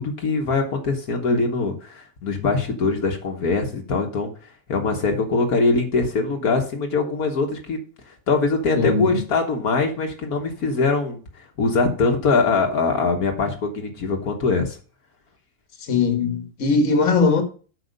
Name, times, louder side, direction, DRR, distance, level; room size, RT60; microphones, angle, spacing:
voice 1, 0.0-4.3 4.7-7.8 8.3-11.2 11.6-14.8, left 3 dB, 75° left, 1.8 m, -22 dB
voice 2, 8.7-9.2 15.8-17.4, left 4 dB, 55° left, 1.7 m, -20 dB
8.1 x 5.7 x 5.2 m
omnidirectional pair, 1.6 m